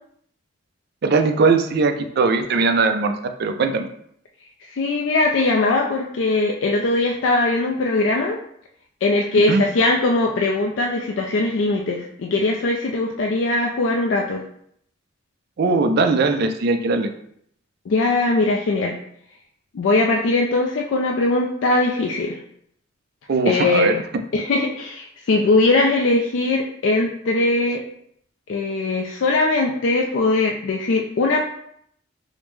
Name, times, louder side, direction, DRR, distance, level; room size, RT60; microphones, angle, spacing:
voice 1, 1.0-3.9 9.5-9.6 15.6-17.1 23.3-24.0, right 4 dB, 55° right, 7 dB, 0.4 m, -19 dB
voice 2, 4.7-8.4 9.0-14.4 17.9-18.9 19.7-22.4 23.5-23.9 24.3-27.8 28.5-31.5, left 2 dB, 65° left, 0 dB, 0.4 m, -20 dB
5.0 x 2.1 x 3.1 m, 0.69 s
head